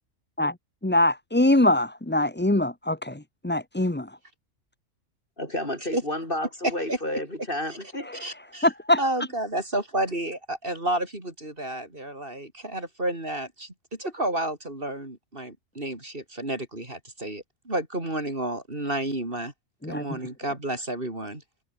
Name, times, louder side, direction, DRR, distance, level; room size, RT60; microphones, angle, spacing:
voice 1, 0.8-4.2 8.0-8.3 8.6-9.0 19.8-20.0, left 1 dB, 10° left, 1.0 m, -23 dB
voice 2, 5.4-8.2, left 1 dB, 40° left, 7.5 m, -31 dB
voice 3, 8.1-8.7 9.0-19.5 19.9-21.4, right 1 dB, 45° right, 5.5 m, -31 dB
omnidirectional pair, 1.3 m